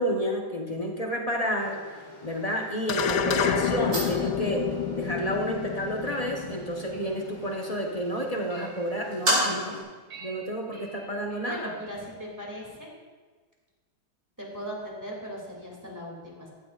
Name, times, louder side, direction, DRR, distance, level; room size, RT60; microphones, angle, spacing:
voice 1, 0.0-1.8 2.2-9.8 10.2-11.7, equal, 25° left, 0 dB, 1.0 m, -30 dB
sound 1, 1.6-9.8, equal, 45° right, 4.7 m, -35 dB
sound 2, 2.9-7.5, left 7 dB, 70° left, 0.8 m, -29 dB
sound 3, 5.1-11.9, right 3 dB, 65° right, 3.5 m, -51 dB
voice 2, 11.4-12.9 14.4-16.5, equal, 10° right, -3 dB, 2.6 m, -38 dB
15.0 x 12.0 x 2.5 m, 1.4 s
omnidirectional pair, 2.3 m